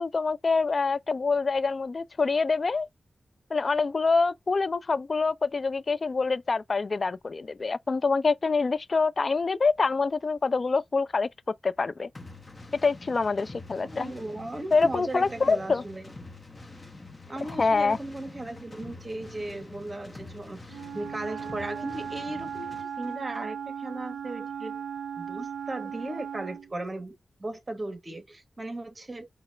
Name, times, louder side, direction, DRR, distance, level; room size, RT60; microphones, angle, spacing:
voice 1, 0.0-2.9 3.5-11.3 11.6-12.1 12.8-14.1 14.7-15.8 17.6-18.0, left 4 dB, 50° left, 0.4 m, -25 dB
sound 1, 12.1-22.9, left 3 dB, 35° left, 1.0 m, -46 dB
voice 2, 13.8-16.1 17.3-24.8 25.2-29.3, right 2 dB, 35° right, 1.1 m, -37 dB
Wind instrument woodwind instrument, 20.7-26.7, right 8 dB, 80° right, 0.4 m, -37 dB
4.8 x 2.3 x 3.3 m
cardioid pair, 55°, 0 cm